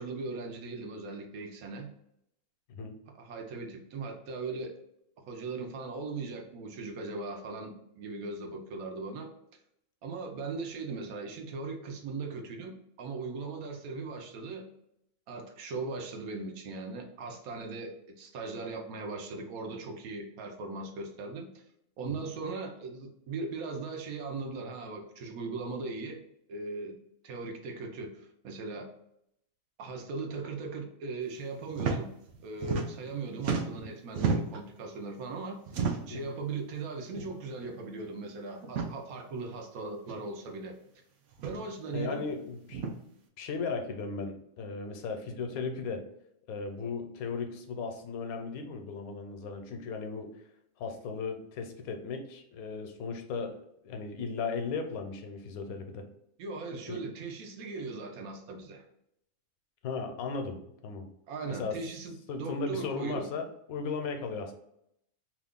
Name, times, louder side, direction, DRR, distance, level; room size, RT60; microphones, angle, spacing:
voice 1, 0.0-1.9 3.2-4.7 5.3-9.3 10.0-14.6 15.3-21.5 22.0-26.2 26.5-27.0 27.2-28.9 29.8-32.1 32.4-40.8 41.4-42.3 56.4-58.8 61.3-63.3, right 3 dB, 80° right, 4 dB, 1.1 m, -39 dB
sound 1, 31.7-32.0 32.3-33.1 33.4-34.7 35.7-36.2 37.1-37.3 37.6-37.7 38.6-38.9 40.1-40.2 41.3-41.6 42.7-42.9, right 5 dB, 65° right, 0.8 m, -32 dB
voice 2, 41.9-42.9 43.4-46.1 46.5-50.3 50.8-53.6 53.8-56.1 56.9-57.0 59.8-61.1 61.5-61.8 62.3-64.5, left 4 dB, 90° left, 5 dB, 1.1 m, -36 dB
2.9 x 2.4 x 3.5 m, 0.76 s
omnidirectional pair, 1.5 m